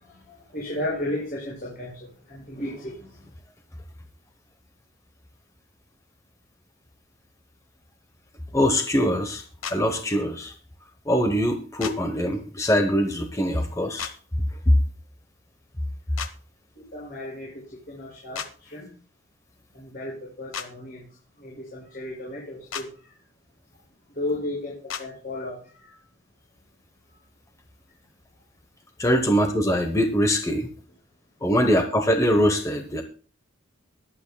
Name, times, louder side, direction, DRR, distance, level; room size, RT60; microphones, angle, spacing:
voice 1, 0.5-1.9 2.3-2.9 16.9-17.5 17.9-18.4 18.7-18.9 19.7-21.0 21.4-22.9 24.2-24.7 25.0-25.6, left 1 dB, 45° left, -5 dB, 6.1 m, -33 dB
voice 2, 8.5-9.4 9.7-10.5 11.1-14.1 14.7-14.8 29.0-30.7 31.4-33.0, equal, 15° left, 6 dB, 0.9 m, -22 dB
sound 1, 9.6-9.8 11.8-11.9 14.0-14.1 16.2-16.3 18.3-18.5 20.5-20.7 22.7-22.9 24.9-25.0, left 7 dB, 80° left, 1.1 m, -32 dB
23.0 x 8.5 x 2.2 m, 0.40 s
head